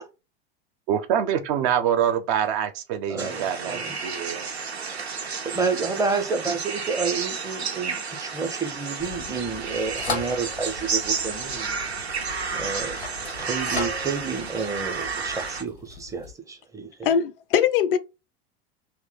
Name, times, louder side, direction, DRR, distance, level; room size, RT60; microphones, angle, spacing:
voice 1, 0.9-4.5, right 9 dB, 50° right, 0.6 m, -25 dB
voice 2, 3.1-4.0 5.2-11.8 12.5-13.0 13.3-16.9, right 4 dB, 10° right, 0.6 m, -30 dB
sound 1, 3.2-15.6, right 5 dB, 90° right, 0.5 m, -31 dB
sound 2, 9.0-16.3, left 3 dB, 85° left, 0.8 m, -37 dB
voice 3, 17.0-18.0, left 8 dB, 60° left, 0.4 m, -21 dB
2.8 x 2.1 x 3.8 m
figure-of-eight pair, 80°, 31 cm